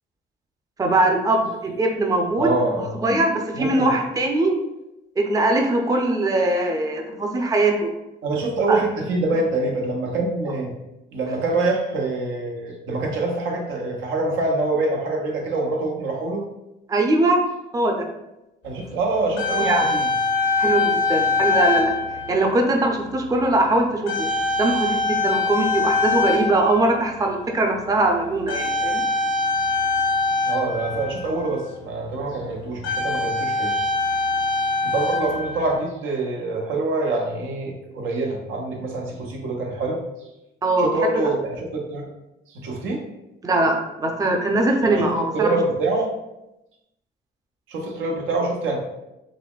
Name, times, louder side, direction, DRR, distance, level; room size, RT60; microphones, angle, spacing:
voice 1, 0.8-4.5 5.2-7.9 8.7-8.8 16.9-17.4 17.7-18.1 19.6-19.9 20.6-21.9 22.3-24.3 24.6-29.1 40.6-41.1 43.4-45.6, right 2 dB, 20° right, 2 dB, 0.5 m, -21 dB
voice 2, 2.4-3.0 3.5-3.9 8.2-10.7 11.1-16.4 18.6-20.1 30.4-33.7 34.9-40.0 40.8-42.1 42.5-43.0 44.8-46.1 47.7-48.8, right 2 dB, 85° right, 0 dB, 0.7 m, -25 dB
sound 1, 18.9-19.0 19.1-22.7 23.4-23.6 24.1-27.4 28.5-31.5 32.2-32.3 32.7-35.7, left 3 dB, 75° left, 0.9 m, -23 dB
4.0 x 2.9 x 2.3 m, 0.94 s
cardioid pair, 90°, 20 cm